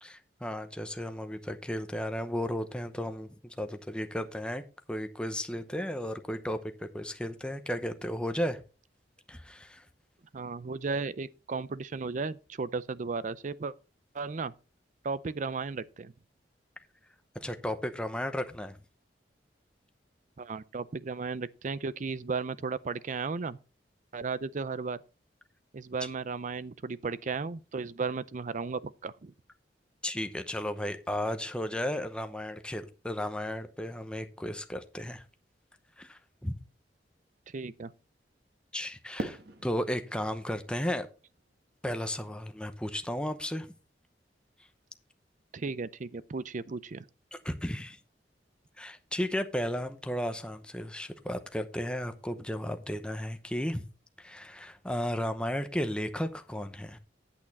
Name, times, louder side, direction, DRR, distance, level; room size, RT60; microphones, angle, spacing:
voice 1, 0.0-8.6 9.3-9.8 17.3-18.8 30.0-35.2 36.0-36.5 38.7-41.1 41.8-43.7 47.3-48.0 48.8-53.8 54.2-57.0, equal, 5° left, 0.8 m, -34 dB
voice 2, 10.3-13.7 14.1-14.5 15.0-16.1 20.4-23.6 24.1-25.0 25.7-29.3 37.5-37.9 45.5-47.0, right 4 dB, 45° right, 0.5 m, -35 dB
Fireworks, 39.2-42.2, right 1 dB, 65° right, 1.5 m, -43 dB
8.7 x 8.6 x 4.1 m
head